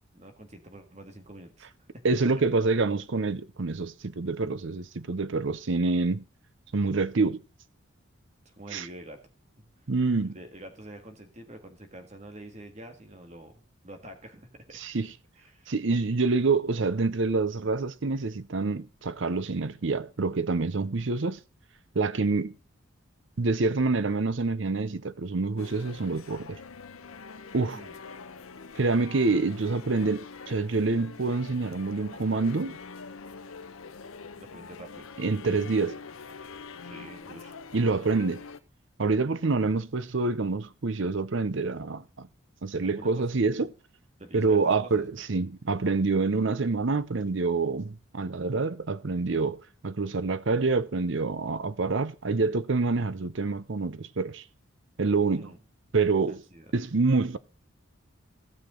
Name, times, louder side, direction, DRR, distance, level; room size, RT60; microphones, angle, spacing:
voice 1, 0.1-2.1 8.5-9.2 9.6-9.7 10.2-13.5 13.8-14.8 15.4-15.7 27.7-27.9 34.3-35.1 36.8-37.6 42.8-43.4 44.2-45.1 55.3-55.6 56.3-56.7, right 1 dB, 35° right, 1.9 m, -46 dB
voice 2, 2.0-6.2 6.7-7.4 8.7-8.9 9.9-10.4 14.7-15.1 15.7-21.4 21.9-22.5 23.4-26.6 27.5-27.8 28.8-32.8 35.2-36.0 37.7-38.4 39.0-42.3 42.6-43.7 44.3-49.6 49.8-54.4 55.0-55.5 55.9-56.4 56.7-57.4, right 3 dB, 65° right, 0.7 m, -27 dB
sound 1, 25.6-38.6, left 5 dB, 90° left, 0.8 m, -44 dB
16.0 x 6.7 x 3.9 m
head